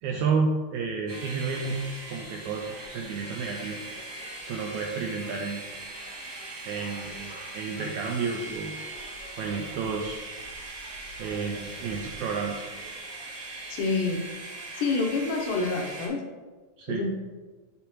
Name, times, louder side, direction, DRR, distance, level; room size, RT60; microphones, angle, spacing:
voice 1, 0.0-3.8 4.5-5.6 6.7-8.7 9.4-10.3 11.2-12.6 16.8-17.1, right 4 dB, 85° right, 1 dB, 1.7 m, -31 dB
sound 1, 1.1-16.1, right 2 dB, 65° right, 1.0 m, -40 dB
voice 2, 13.7-14.2 14.8-16.2 16.9-17.1, left 3 dB, 75° left, 1 dB, 2.2 m, -27 dB
8.3 x 4.8 x 3.0 m, 1.3 s
omnidirectional pair, 3.8 m